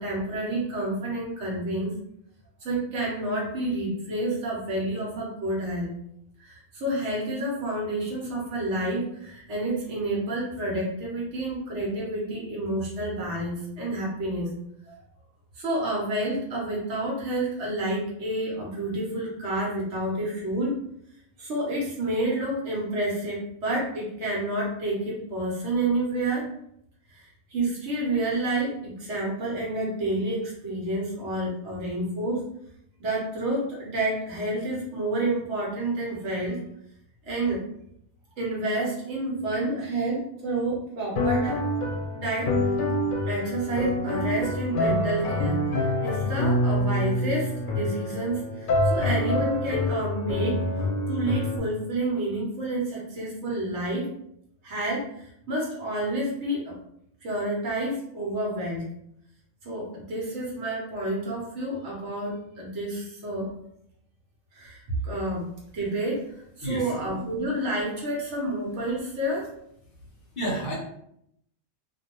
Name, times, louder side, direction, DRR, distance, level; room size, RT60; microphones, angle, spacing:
voice 1, 0.0-2.0 2.6-5.9 6.4-14.5 14.8-14.9 15.5-20.8 21.4-26.5 27.1-32.4 33.0-36.6 37.2-37.6 38.4-41.6 42.1-42.5 43.3-50.6 51.1-54.1 54.6-56.8 57.2-58.9 59.6-63.5 64.5-65.5 65.7-69.5, right 1 dB, 65° right, -4 dB, 1.0 m, -29 dB
sound 1, 41.2-51.6, left 1 dB, 90° left, 1.0 m, -26 dB
voice 2, 66.6-66.9 70.4-70.7, right 1 dB, 50° left, -4 dB, 0.9 m, -29 dB
2.5 x 2.1 x 2.8 m, 0.75 s
omnidirectional pair, 1.3 m